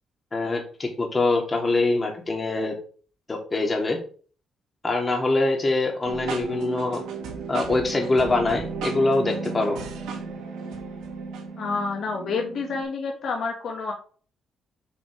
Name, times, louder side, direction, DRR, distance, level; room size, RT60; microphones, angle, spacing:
voice 1, 0.3-2.7 3.3-4.0 4.8-7.0 7.5-9.8, left 2 dB, 25° left, 1 dB, 3.0 m, -24 dB
sound 1, 6.0-12.8, right 5 dB, 85° right, 2.3 m, -34 dB
voice 2, 11.6-13.9, left 4 dB, 65° left, 1 dB, 2.0 m, -28 dB
8.9 x 5.3 x 3.5 m, 0.40 s
cardioid pair, 90°, 0 cm